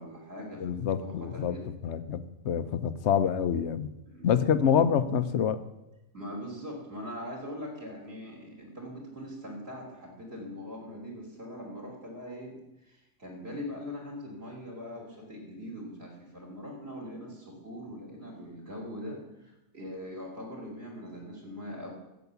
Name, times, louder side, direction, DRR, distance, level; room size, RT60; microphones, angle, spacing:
voice 1, 0.0-1.7 4.1-4.5 6.1-21.9, equal, 40° right, 0 dB, 3.4 m, -42 dB
voice 2, 0.6-1.6 1.8-3.9 4.2-5.6, left 8 dB, 60° left, 13 dB, 0.9 m, -26 dB
12.5 x 8.2 x 6.9 m, 0.93 s
omnidirectional pair, 1.6 m